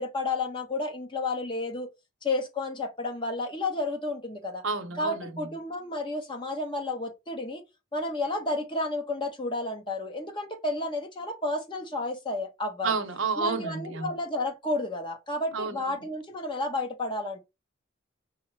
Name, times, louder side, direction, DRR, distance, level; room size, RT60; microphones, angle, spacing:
voice 1, 0.0-1.9 2.2-4.6 5.0-7.6 7.9-12.9 13.4-17.4, left 2 dB, 25° left, 0.8 m, -31 dB
voice 2, 4.6-5.5 12.8-14.1 15.5-15.9, right 4 dB, 70° right, 0.7 m, -30 dB
5.3 x 2.0 x 4.5 m
head